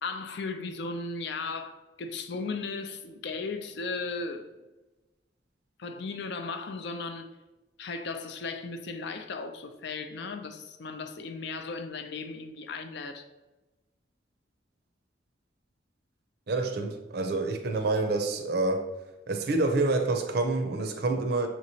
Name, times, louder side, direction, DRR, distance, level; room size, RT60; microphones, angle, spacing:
voice 1, 0.0-4.6 5.8-7.3 7.8-13.2, left 4 dB, 65° left, 0.5 m, -36 dB
voice 2, 16.5-18.9 19.3-21.5, right 2 dB, 60° right, 0.5 m, -27 dB
6.4 x 3.0 x 2.7 m
head